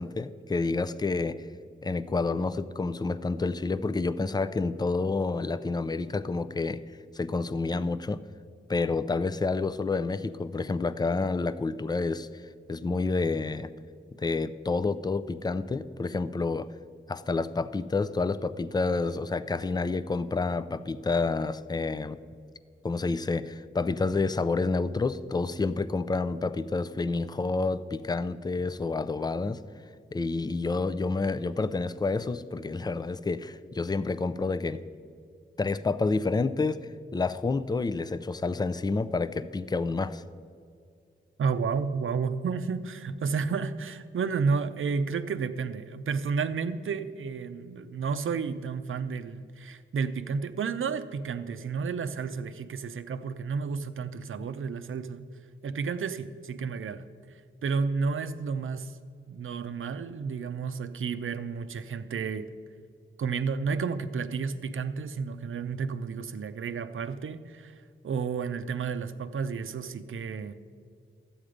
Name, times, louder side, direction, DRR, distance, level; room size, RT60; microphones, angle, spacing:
voice 1, 0.0-1.5 1.8-6.8 7.1-8.2 8.7-12.3 12.7-13.7 14.2-16.7 17.1-22.2 22.8-29.6 30.1-34.8 35.6-36.8 37.1-40.2, left 3 dB, 20° left, 14 dB, 0.4 m, -29 dB
voice 2, 41.4-55.2 55.6-57.0 57.6-59.0 59.3-62.5 63.2-67.7 68.0-70.5, right 5 dB, 85° right, 10 dB, 0.6 m, -31 dB
12.5 x 8.7 x 5.0 m, 2.2 s
wide cardioid pair, 110°, 21 cm